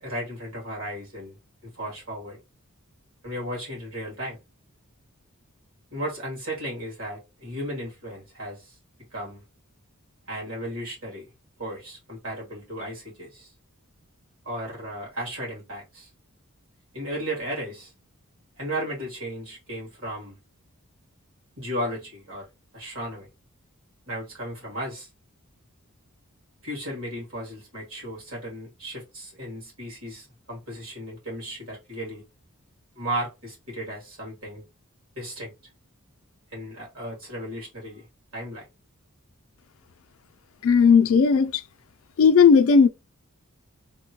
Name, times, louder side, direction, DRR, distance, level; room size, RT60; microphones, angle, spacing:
voice 1, 0.0-1.4 1.6-2.4 3.2-4.4 5.9-8.8 9.1-9.4 10.3-11.3 11.6-13.5 14.4-16.1 16.9-17.9 18.5-20.4 21.6-22.5 22.7-23.3 24.1-25.1 26.6-32.2 33.0-34.6 35.2-35.5 36.5-38.1 38.3-38.7, equal, 65° right, 2.1 m, -35 dB
voice 2, 40.6-41.6 42.2-42.9, left 6 dB, 65° left, 0.4 m, -16 dB
3.5 x 2.2 x 2.8 m
head